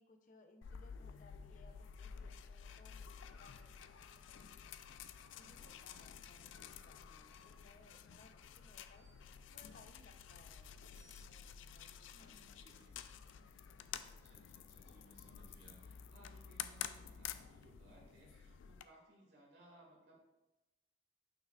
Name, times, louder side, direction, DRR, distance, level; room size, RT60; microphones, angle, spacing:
voice 1, 0.0-4.6 5.4-9.1 9.5-12.8, left 3 dB, 45° left, 5 dB, 0.6 m, -65 dB
sound 1, 0.6-18.9, left 8 dB, 90° left, 0.4 m, -51 dB
sound 2, 3.2-3.8 5.3-5.8 7.2-7.6 8.9-9.4 10.9-11.4 12.7-13.2 16.0-16.1, right 2 dB, 20° right, 1.0 m, -72 dB
voice 2, 12.1-13.0 14.0-20.2, right 1 dB, 60° right, -4 dB, 2.1 m, -64 dB
8.9 x 5.6 x 2.4 m, 1.0 s
head